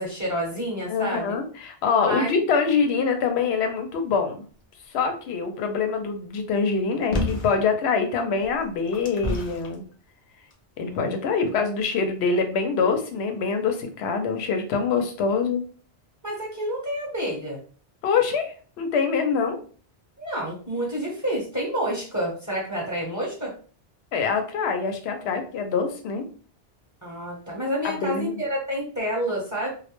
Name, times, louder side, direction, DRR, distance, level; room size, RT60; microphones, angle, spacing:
voice 1, 0.0-1.3 2.0-2.3 10.8-11.2 16.2-17.6 20.2-23.5 27.0-29.7, equal, 20° right, -4 dB, 0.7 m, -29 dB
voice 2, 0.9-4.5 4.9-9.8 10.8-15.6 18.0-19.6 24.1-26.2 27.8-28.4, left 5 dB, 85° left, 6 dB, 0.8 m, -25 dB
sound 1, 7.1-7.6 8.4-9.7 10.5-10.6, left 2 dB, 55° left, 0.5 m, -29 dB
2.2 x 2.1 x 2.9 m, 0.41 s
omnidirectional pair, 1.0 m